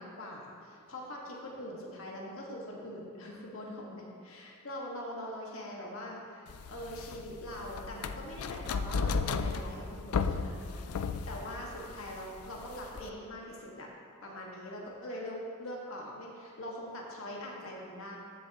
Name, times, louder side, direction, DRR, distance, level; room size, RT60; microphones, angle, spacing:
voice 1, 0.0-13.9 14.2-18.2, left 1 dB, 70° left, -2 dB, 1.6 m, -43 dB
sound 1, 6.5-13.1, left 5 dB, 90° left, 0.4 m, -35 dB
14.5 x 6.8 x 2.9 m, 2.5 s
head